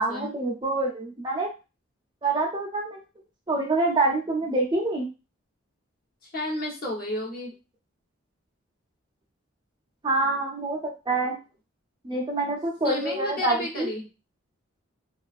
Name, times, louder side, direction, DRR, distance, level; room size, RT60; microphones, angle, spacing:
voice 1, 0.0-1.5 2.2-3.0 3.5-5.1 10.0-11.3 12.0-13.9, right 2 dB, 20° right, -1 dB, 0.4 m, -26 dB
voice 2, 6.2-7.5 12.8-14.0, left 1 dB, 45° left, -3 dB, 0.8 m, -32 dB
2.3 x 2.3 x 2.4 m, 0.30 s
head